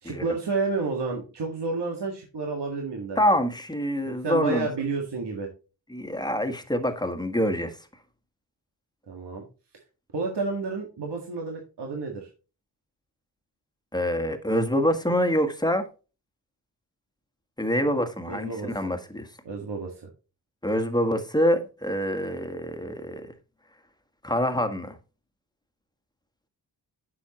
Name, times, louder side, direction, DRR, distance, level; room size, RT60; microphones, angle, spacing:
voice 1, 0.0-3.2 4.1-5.5 9.1-9.5 10.1-12.3 18.3-18.7 19.5-20.0, right 4 dB, 70° right, 1.9 m, -30 dB
voice 2, 3.2-4.7 5.9-7.8 13.9-15.8 17.6-19.3 20.6-23.3 24.2-25.0, equal, 10° left, 1.6 m, -26 dB
9.4 x 6.3 x 3.0 m
cardioid pair, 60°, 42 cm